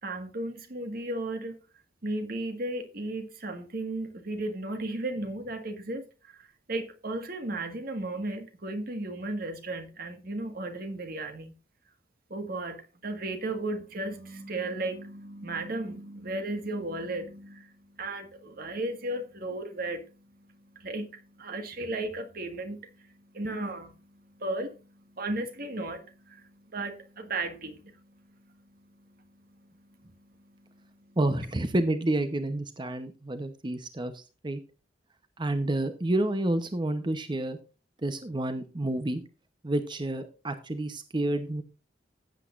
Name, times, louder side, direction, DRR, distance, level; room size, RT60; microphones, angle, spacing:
voice 1, 0.0-1.6 2.0-11.5 12.3-31.2, right 2 dB, 55° right, 1.7 m, -35 dB
voice 2, 31.2-34.6 35.4-37.6 38.0-39.2 39.6-41.6, right 1 dB, 25° right, 0.8 m, -29 dB
15.0 x 8.2 x 2.5 m
head